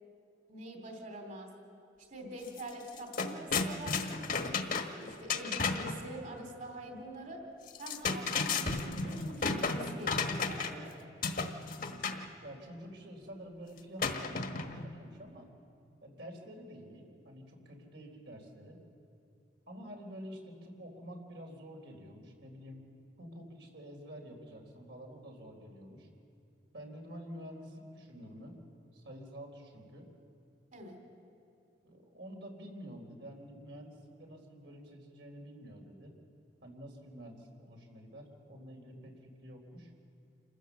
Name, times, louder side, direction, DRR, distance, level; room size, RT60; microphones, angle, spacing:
voice 1, 0.5-1.5 2.1-7.4 7.8-10.9 30.7-31.0, right 1 dB, 45° right, 3 dB, 2.9 m, -45 dB
sound 1, 2.5-2.6 2.9-6.0 7.7-10.9 11.2-12.3 14.0-14.9, left 4 dB, 55° left, 1.4 m, -33 dB
voice 2, 11.8-15.5 16.0-18.8 19.7-22.8 23.2-26.1 26.7-28.6 28.9-30.1 31.8-36.2 36.6-39.9, equal, 75° right, 1 dB, 3.9 m, -48 dB
28.0 x 15.5 x 7.3 m, 2.5 s
head